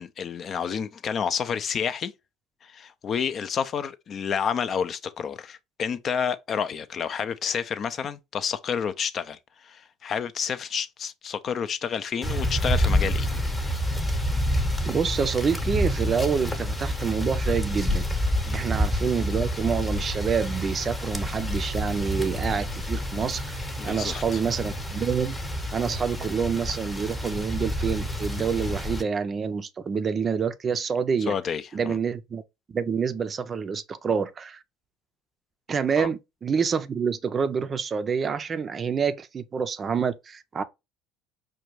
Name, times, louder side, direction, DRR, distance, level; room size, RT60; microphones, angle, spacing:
voice 1, 0.0-2.1 2.6-13.3 18.5-18.6 23.8-24.4 31.3-32.0 36.0-36.1, left 7 dB, 45° left, 0.4 m, -30 dB
sound 1, 12.2-29.0, equal, 15° left, 0.9 m, -28 dB
voice 2, 14.9-18.0 18.5-25.4 25.7-31.3 31.7-32.4 32.7-34.6 35.7-40.6, right 6 dB, 35° right, 0.4 m, -27 dB
4.9 x 2.2 x 3.0 m
hypercardioid pair, 75°, 0 cm